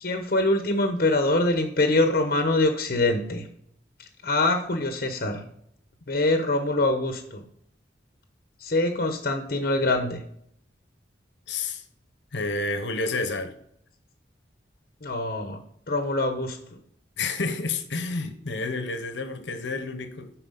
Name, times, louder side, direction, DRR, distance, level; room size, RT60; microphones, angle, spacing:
voice 1, 0.0-3.5 4.2-5.4 6.1-7.4 8.6-10.2 15.0-15.6 15.9-16.6, left 2 dB, 50° left, 0.8 m, -24 dB
voice 2, 11.5-11.8 12.3-13.5 17.2-20.3, left 3 dB, 75° left, 1.0 m, -30 dB
10.5 x 4.4 x 3.9 m
head